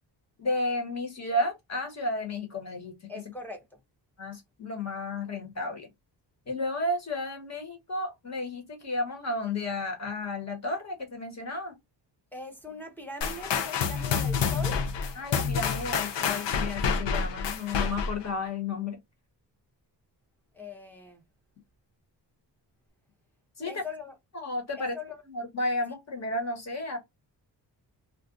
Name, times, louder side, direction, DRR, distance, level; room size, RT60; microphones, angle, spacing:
voice 1, 0.4-3.0 4.2-5.9 6.5-11.7 15.1-19.0 23.6-23.8 24.3-25.0 25.2-27.0, left 2 dB, 40° left, 1.2 m, -32 dB
voice 2, 3.1-3.6 12.3-14.8 20.5-21.2 23.6-24.1 24.8-25.2, left 3 dB, 5° left, 0.7 m, -41 dB
sound 1, 13.2-18.3, left 6 dB, 80° left, 0.7 m, -28 dB
2.5 x 2.4 x 3.7 m
wide cardioid pair, 150°, 43 cm